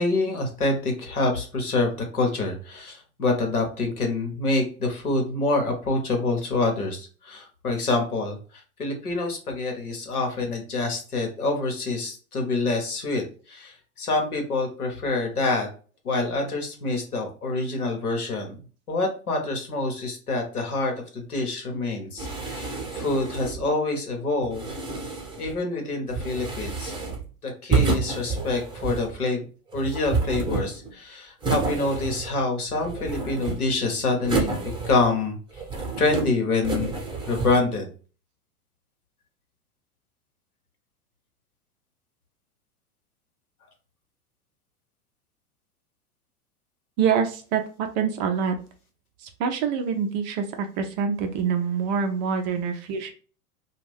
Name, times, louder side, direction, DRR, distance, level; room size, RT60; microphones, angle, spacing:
voice 1, 0.0-15.7 16.0-18.6 18.9-24.7 25.4-26.9 27.4-29.4 29.7-34.5 34.8-35.6 36.0-37.0 37.3-37.9, left 3 dB, 85° left, 2 dB, 1.1 m, -26 dB
sound 1, 22.2-23.7 24.4-25.6 26.1-27.3 27.7-29.2 29.7-30.9 31.4-32.5 32.8-33.8 34.2-35.2 35.5-36.3 36.6-37.6, right 4 dB, 10° right, 0.8 m, -29 dB
voice 2, 47.0-48.5 49.2-53.1, right 6 dB, 30° right, 5 dB, 0.4 m, -26 dB
2.5 x 2.3 x 3.3 m, 0.39 s
figure-of-eight pair, 95°, 43 cm